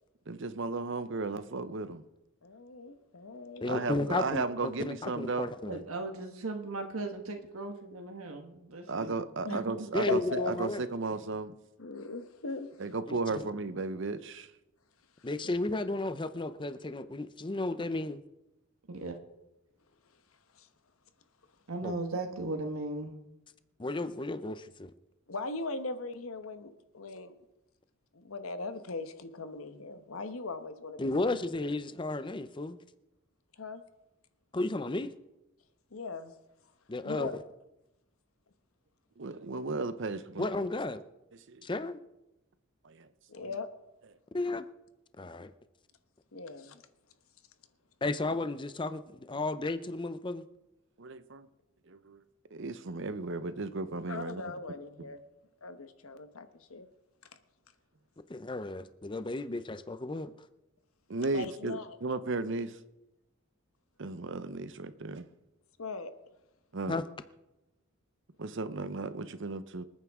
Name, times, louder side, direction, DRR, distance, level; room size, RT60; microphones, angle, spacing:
voice 1, 0.3-2.0 3.7-5.5 8.9-11.5 12.8-14.5 39.2-40.5 41.5-41.7 42.8-43.1 51.0-51.5 51.9-52.2 52.5-54.4 61.1-62.8 64.0-65.3 66.7-67.0 68.4-69.8, right 3 dB, 60° right, 12 dB, 0.7 m, -35 dB
voice 2, 2.4-4.2 9.4-9.6 10.1-10.5 11.8-12.7 15.2-15.3 20.5-20.7 25.3-27.3 28.1-31.0 33.5-33.8 35.9-36.4 37.0-37.4 43.3-43.7 46.3-46.8 54.1-55.2 55.6-56.9 61.3-62.0 65.8-66.1, left 3 dB, 85° left, 9 dB, 1.1 m, -39 dB
voice 3, 3.6-5.8 9.9-10.8 13.1-13.4 15.2-18.2 21.8-22.0 23.8-24.9 31.0-32.8 34.5-35.1 36.9-37.4 40.4-41.0 41.6-42.0 44.3-44.7 45.2-45.5 48.0-50.4 58.3-60.3 66.9-67.0, left 2 dB, 25° left, 12 dB, 0.5 m, -33 dB
voice 4, 5.6-9.1 9.5-9.9 18.9-19.1 21.7-23.1, right 2 dB, 90° right, 3 dB, 1.5 m, -37 dB
26.5 x 9.2 x 3.6 m, 0.94 s
head